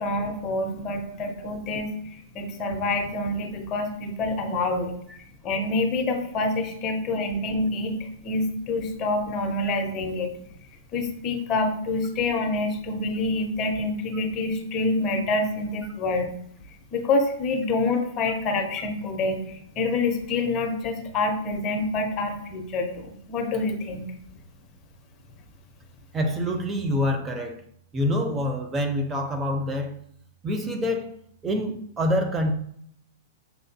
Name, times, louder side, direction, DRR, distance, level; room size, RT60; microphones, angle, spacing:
voice 1, 0.0-4.9 5.4-10.3 10.9-16.3 16.9-24.1, left 2 dB, 35° left, 4 dB, 0.7 m, -27 dB
voice 2, 26.1-27.6 27.9-30.0 30.4-31.1 31.4-32.5, left 1 dB, 20° right, 4 dB, 0.5 m, -26 dB
6.6 x 2.5 x 2.2 m, 0.66 s
figure-of-eight pair, 105°, 0 cm